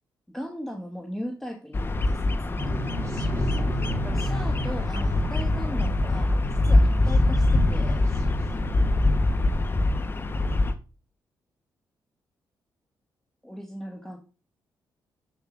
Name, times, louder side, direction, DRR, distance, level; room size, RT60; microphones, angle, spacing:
voice 1, 0.3-2.3 4.0-8.0 13.4-14.2, equal, 5° left, 1 dB, 1.6 m, -38 dB
Bird vocalization bird call bird song, 1.7-10.7, left 2 dB, 30° left, 1.0 m, -24 dB
sound 1, 2.6-9.1, equal, 45° right, 2.7 m, -33 dB
8.1 x 7.1 x 2.5 m, 0.35 s
cardioid pair, 80°, 7 cm